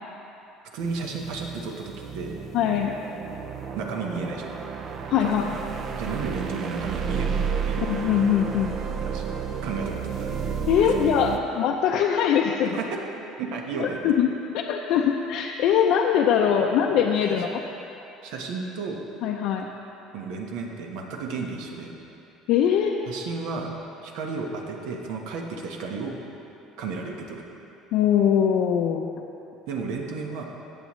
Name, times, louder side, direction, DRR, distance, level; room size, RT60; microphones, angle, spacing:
voice 1, 0.7-2.3 3.7-4.5 5.2-5.6 6.0-7.9 9.0-9.3 9.6-10.4 10.8-10.9 12.6-13.0 13.4-14.0 16.9-17.0 18.2-19.0 20.1-21.9 23.1-23.7 24.0-26.2 26.8-27.4 29.7-30.4, right 4 dB, 70° right, 1 dB, 1.3 m, -33 dB
sound 1, 0.8-11.4, right 6 dB, 35° right, 0.5 m, -31 dB
voice 2, 2.5-2.9 5.1-5.4 7.9-8.8 10.7-12.8 13.8-17.6 19.2-19.7 22.5-23.0 27.9-29.1, left 8 dB, 55° left, 0 dB, 0.5 m, -22 dB
16.0 x 8.5 x 3.2 m, 2.9 s
cardioid pair, 160°, 0 cm